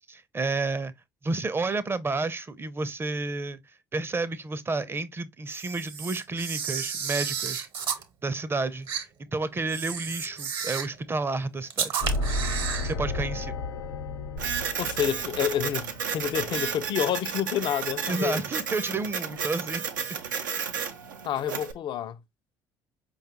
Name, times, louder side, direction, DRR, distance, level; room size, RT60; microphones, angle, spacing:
voice 1, 0.1-0.9 1.2-3.6 3.9-7.7 8.2-12.0 12.8-13.7 18.1-19.8, right 3 dB, 25° right, 0.5 m, -31 dB
Camera, 5.5-8.0 8.9-9.0 9.7-11.0 11.7-12.9, right 7 dB, 55° right, 0.9 m, -32 dB
sound 1, 12.0-16.7, left 2 dB, 85° left, 0.8 m, -33 dB
Printer, 14.4-21.7, right 6 dB, 90° right, 0.5 m, -32 dB
voice 2, 14.8-18.4 21.2-22.2, left 10 dB, 50° left, 0.4 m, -29 dB
4.7 x 2.3 x 2.9 m
hypercardioid pair, 60°, 10 cm